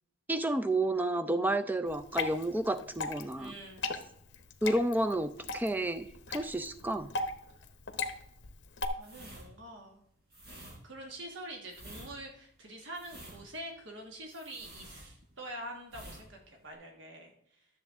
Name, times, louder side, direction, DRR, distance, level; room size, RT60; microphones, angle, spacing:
voice 1, 0.3-3.5 4.6-7.1, right 1 dB, 10° right, 10 dB, 0.4 m, -31 dB
Water / Drip, 1.9-8.9, left 4 dB, 65° left, 0.9 m, -38 dB
voice 2, 3.4-4.0 9.0-10.0 10.8-17.7, right 1 dB, 70° right, 2 dB, 1.3 m, -45 dB
sound 1, 9.0-15.5 15.8-16.2 16.5-16.7, right 1 dB, 55° right, 4.1 m, -50 dB
12.5 x 7.1 x 3.6 m, 0.70 s
head